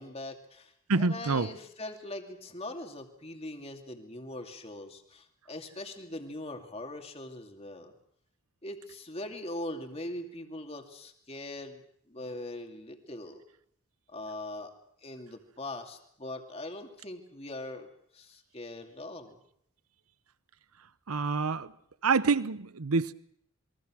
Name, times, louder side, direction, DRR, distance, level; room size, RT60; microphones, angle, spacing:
voice 1, 0.0-7.9 8.6-13.4 14.1-14.7 15.0-19.4, left 1 dB, 30° left, 2.5 m, -41 dB
voice 2, 0.9-1.5 21.1-21.7 22.0-23.1, right 4 dB, 90° right, 0.9 m, -27 dB
27.5 x 22.5 x 6.2 m
head